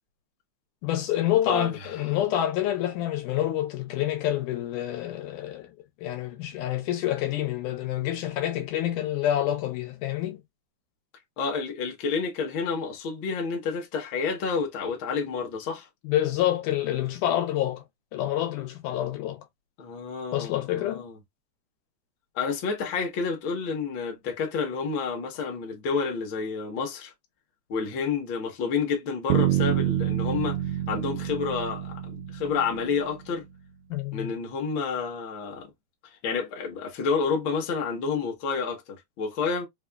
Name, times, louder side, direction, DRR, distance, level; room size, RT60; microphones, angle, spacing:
voice 1, 0.8-5.7 6.0-10.4 16.0-17.8 18.1-19.5 20.3-21.0 33.9-34.3, left 12 dB, 80° left, 2.2 m, -27 dB
voice 2, 1.5-2.2 11.4-15.9 19.8-21.2 22.3-27.1 27.7-30.6 30.9-33.4 34.1-35.7 36.2-39.7, left 5 dB, 60° left, 1.3 m, -29 dB
Bass guitar, 29.3-33.2, right 12 dB, 80° right, 1.7 m, -27 dB
4.8 x 2.4 x 2.2 m
omnidirectional pair, 3.6 m